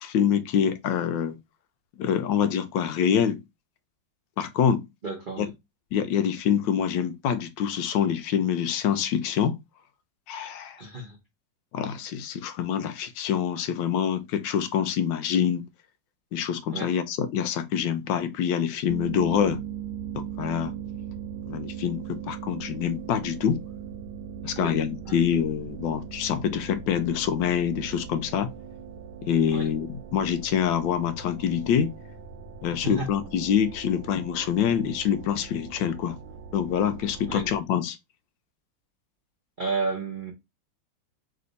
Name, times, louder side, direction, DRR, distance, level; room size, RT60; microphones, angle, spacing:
voice 1, 0.0-1.4 2.0-3.4 4.4-4.9 5.4-5.5 5.9-9.6 10.3-10.8 11.7-15.6 16.3-19.6 20.1-20.7 21.5-23.6 24.4-28.5 29.2-31.9 32.6-36.2 36.5-38.0, left 8 dB, 75° left, 1.2 m, -26 dB
voice 2, 5.0-5.5 10.8-11.2 16.7-16.9 24.6-24.8 25.0-25.2 29.5-29.7 32.7-33.1 37.3-37.5 39.6-40.3, right 3 dB, 50° right, 0.5 m, -32 dB
sound 1, 18.9-37.6, right 8 dB, 85° right, 1.5 m, -39 dB
3.3 x 3.0 x 3.9 m
omnidirectional pair, 2.2 m